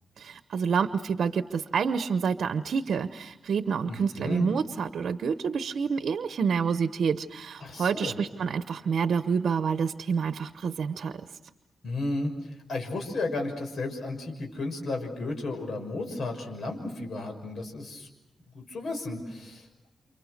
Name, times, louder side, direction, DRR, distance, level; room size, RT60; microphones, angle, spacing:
voice 1, 0.2-11.2, right 6 dB, 80° right, 10 dB, 0.9 m, -28 dB
voice 2, 3.8-4.5 7.6-8.1 11.8-18.1 18.5-19.7, left 2 dB, 70° left, 4 dB, 6.2 m, -33 dB
29.5 x 29.0 x 6.6 m, 0.91 s
cardioid pair, 90°, 0 cm